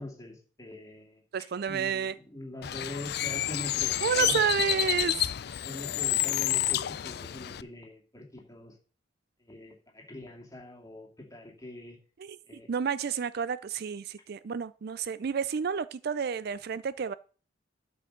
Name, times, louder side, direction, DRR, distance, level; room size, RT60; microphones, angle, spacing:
voice 1, 0.0-1.2 1.7-4.4 5.6-8.7 9.4-12.0 12.5-12.7, left 1 dB, 20° left, 2.5 m, -43 dB
voice 2, 1.3-2.2 4.0-5.2 12.2-12.4 12.7-17.1, right 7 dB, 55° right, 0.4 m, -30 dB
Bird, 2.6-7.6, left 13 dB, 55° left, 0.4 m, -29 dB
12.0 x 5.1 x 6.6 m
head